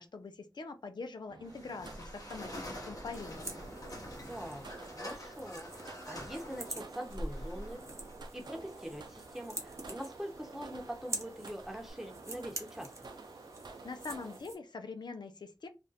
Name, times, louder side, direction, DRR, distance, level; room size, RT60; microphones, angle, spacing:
voice 1, 0.0-3.6 13.7-15.7, left 4 dB, 85° left, 7 dB, 0.4 m, -44 dB
sound 1, 1.3-14.4, right 3 dB, 90° right, 0.5 m, -51 dB
sound 2, 1.4-11.9, equal, 55° left, 0.9 m, -46 dB
sound 3, 3.1-14.6, right 2 dB, 40° right, 0.8 m, -47 dB
voice 2, 4.3-7.8 8.3-13.1, equal, 5° right, 1 dB, 0.9 m, -43 dB
2.5 x 2.1 x 4.0 m, 0.28 s
wide cardioid pair, 70°, 7 cm